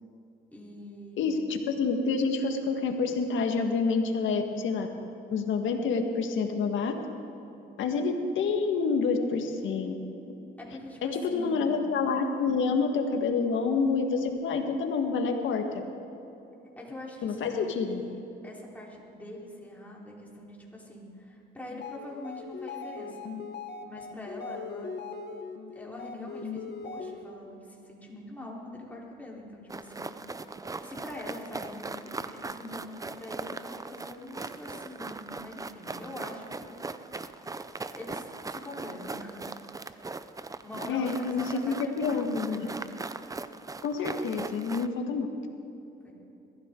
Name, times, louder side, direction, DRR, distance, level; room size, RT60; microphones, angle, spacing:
voice 1, 0.5-1.3 10.6-11.8 16.8-18.2 18.4-23.3 23.9-25.0 25.7-30.1 30.8-36.7 38.0-39.4 40.6-43.0 46.0-46.1, left 1 dB, 10° left, -4 dB, 4.0 m, -43 dB
voice 2, 1.2-4.9 5.3-6.9 7.8-9.9 11.0-15.6 17.2-18.0 40.9-42.7 43.8-45.3, left 4 dB, 75° left, 4 dB, 1.7 m, -28 dB
sound 1, 21.7-27.5, left 4 dB, 60° left, 1.2 m, -40 dB
sound 2, 29.7-44.9, right 3 dB, 15° right, 0.6 m, -39 dB
22.0 x 15.0 x 3.8 m, 3.0 s
cardioid pair, 90°, 20 cm